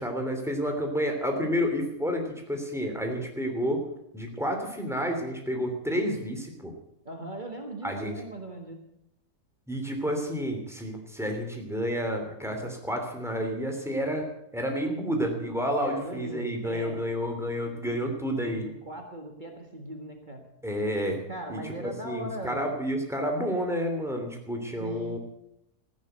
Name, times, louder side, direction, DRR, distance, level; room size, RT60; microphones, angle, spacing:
voice 1, 0.0-3.9 4.1-6.7 7.8-8.1 9.7-18.7 20.6-21.2 21.5-25.2, equal, ahead, 3 dB, 2.9 m, -30 dB
voice 2, 7.1-8.8 15.8-17.1 18.0-20.4 21.3-22.8 24.8-25.2, right 1 dB, 30° right, 3 dB, 1.8 m, -39 dB
15.0 x 10.0 x 7.9 m, 0.79 s
omnidirectional pair, 1.6 m